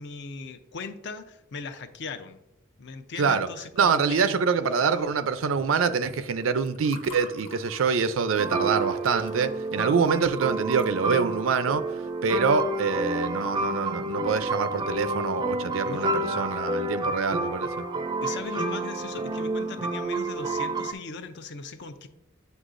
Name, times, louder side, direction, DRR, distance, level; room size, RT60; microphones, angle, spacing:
voice 1, 0.0-2.4 2.8-4.4 15.8-16.4 18.2-22.1, left 4 dB, 60° left, 0.6 m, -39 dB
voice 2, 3.8-11.8 12.2-17.8, right 5 dB, 85° right, 0.4 m, -25 dB
Water / Fill (with liquid), 6.3-11.4, left 4 dB, 30° left, 0.8 m, -48 dB
sound 1, 8.4-20.9, right 2 dB, 25° right, 0.4 m, -29 dB
8.1 x 5.4 x 2.5 m
head